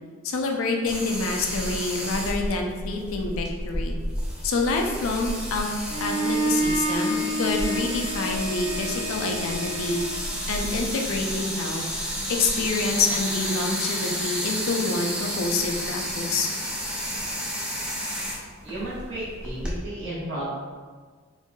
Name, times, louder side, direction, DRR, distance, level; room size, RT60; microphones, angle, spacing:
voice 1, 0.2-4.0 4.4-5.7 6.0-10.0 10.5-11.8 12.3-16.5, left 3 dB, 75° left, 2 dB, 0.4 m, -27 dB
sound 1, 0.9-19.8, equal, 5° right, 0.3 m, -31 dB
Bowed string instrument, 5.9-10.3, right 1 dB, 40° right, 1.1 m, -29 dB
voice 2, 18.6-20.5, right 1 dB, 60° right, -8 dB, 1.1 m, -33 dB
4.4 x 2.6 x 2.2 m, 1.5 s
head